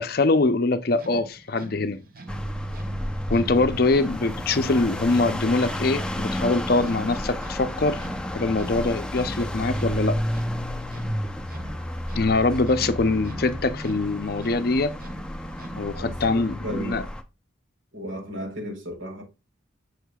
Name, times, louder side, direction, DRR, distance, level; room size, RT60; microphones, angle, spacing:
voice 1, 0.0-2.0 3.3-8.0 8.3-10.2 12.2-14.9 15.7-17.0, left 3 dB, 50° left, 0.6 m, -23 dB
sound 1, 0.9-16.1, right 2 dB, 45° right, 1.0 m, -45 dB
sound 2, 2.3-17.2, equal, 5° left, 0.6 m, -31 dB
voice 2, 15.9-17.0 17.9-19.2, equal, 90° right, 3.7 m, -35 dB
6.4 x 6.4 x 2.3 m
head